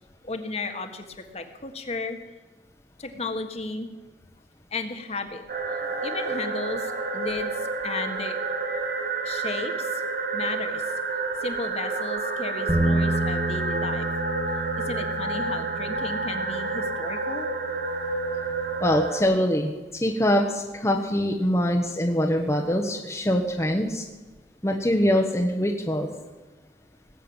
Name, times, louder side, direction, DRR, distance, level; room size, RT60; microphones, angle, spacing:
voice 1, 0.2-2.2 3.0-3.9 4.7-5.4 6.0-8.4 9.2-10.0 10.3-10.9 11.4-14.1 14.7-17.5, left 3 dB, 35° left, 6 dB, 1.5 m, -34 dB
sound 1, 5.5-19.2, right 3 dB, 50° right, 1.4 m, -29 dB
Bass guitar, 12.7-18.9, right 1 dB, 20° right, 2.2 m, -31 dB
voice 2, 18.8-24.0 24.6-26.1, equal, 15° left, 1 dB, 1.1 m, -23 dB
19.0 x 7.8 x 9.0 m, 1.2 s
head